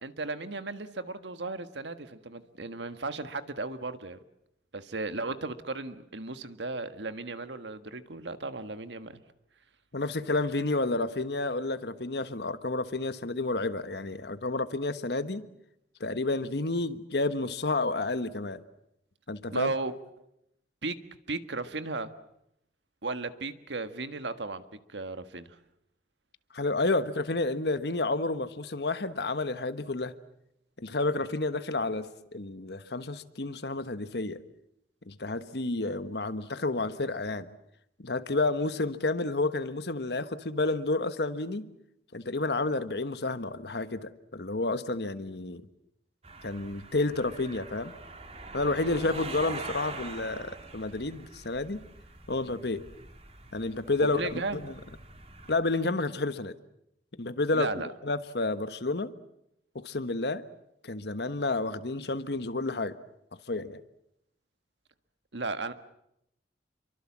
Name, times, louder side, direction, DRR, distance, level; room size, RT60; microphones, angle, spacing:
voice 1, 0.0-4.2 4.7-9.2 19.5-20.3 20.8-21.0 21.3-22.1 23.0-24.6 24.9-25.6 54.0-54.6 57.5-57.9 65.3-65.7, right 3 dB, 85° right, 1.6 m, -35 dB
voice 2, 9.9-15.5 16.0-18.6 19.3-19.7 26.5-30.1 30.8-34.4 35.1-37.5 38.0-41.7 42.1-45.6 46.4-47.9 48.5-51.9 52.3-52.9 53.5-54.7 55.5-56.6 57.2-57.7 58.0-59.1 59.7-60.4 60.8-63.0 63.5-63.8, left 2 dB, 65° left, 1.3 m, -30 dB
sound 1, 46.2-55.6, right 3 dB, 35° right, 3.1 m, -44 dB
28.0 x 24.0 x 7.4 m
head